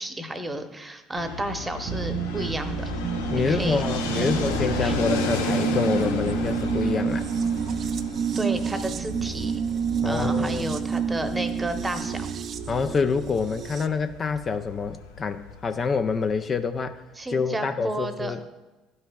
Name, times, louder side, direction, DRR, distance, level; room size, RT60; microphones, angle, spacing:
voice 1, 0.0-2.9 3.3-3.8 4.1-4.4 4.8-4.9 8.3-9.6 10.0-12.3 17.2-18.3, right 1 dB, 15° right, 8 dB, 0.9 m, -32 dB
Fixed-wing aircraft airplane, 1.2-16.9, left 4 dB, 80° left, 0.8 m, -34 dB
sound 1, 1.8-13.9, right 6 dB, 50° right, 0.4 m, -28 dB
voice 2, 3.3-7.3 10.0-10.8 12.7-17.0 17.3-18.4, left 5 dB, 35° left, 8 dB, 0.4 m, -27 dB
12.5 x 5.4 x 2.3 m, 1.1 s
hypercardioid pair, 65°, 0 cm